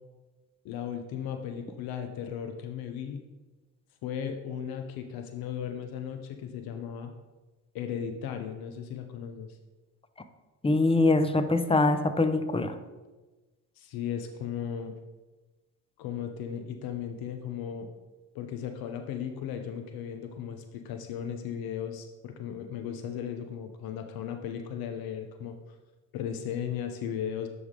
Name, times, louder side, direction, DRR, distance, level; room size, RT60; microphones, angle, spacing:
voice 1, 0.6-3.2 4.0-7.1 7.7-9.6 13.8-15.0 16.0-17.9 18.3-25.6 26.1-27.5, left 8 dB, 80° left, 6 dB, 0.7 m, -36 dB
voice 2, 10.6-12.7, left 2 dB, 15° left, 10 dB, 0.6 m, -23 dB
9.5 x 3.5 x 3.7 m, 1.2 s
supercardioid pair, 65°, 36 cm